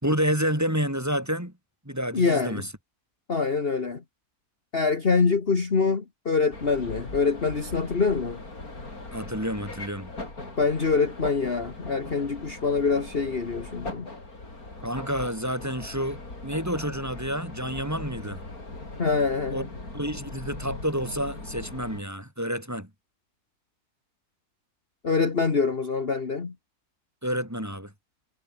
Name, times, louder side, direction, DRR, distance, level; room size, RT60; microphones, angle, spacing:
voice 1, 0.0-1.5 1.8-2.7 9.1-10.1 14.8-18.4 19.5-19.7 19.9-22.9 27.2-27.9, equal, 10° right, 4.4 m, -29 dB
voice 2, 2.1-2.6 3.3-4.0 4.7-8.4 10.6-14.1 19.0-19.7 25.0-26.5, left 4 dB, 40° left, 1.8 m, -25 dB
sound 1, 6.5-22.0, left 2 dB, 70° left, 6.0 m, -40 dB
omnidirectional pair, 1.6 m